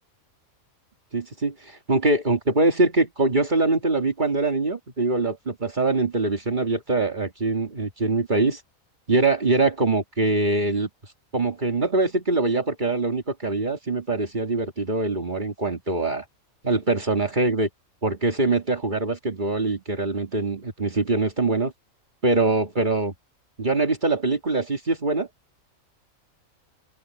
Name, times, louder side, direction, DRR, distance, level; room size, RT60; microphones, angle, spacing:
voice 1, 1.1-8.6 9.1-10.9 11.3-16.2 16.6-17.7 18.0-21.7 22.2-23.1 23.6-25.3, right 3 dB, 35° right, 2.2 m, -23 dB
open air
omnidirectional pair, 1.4 m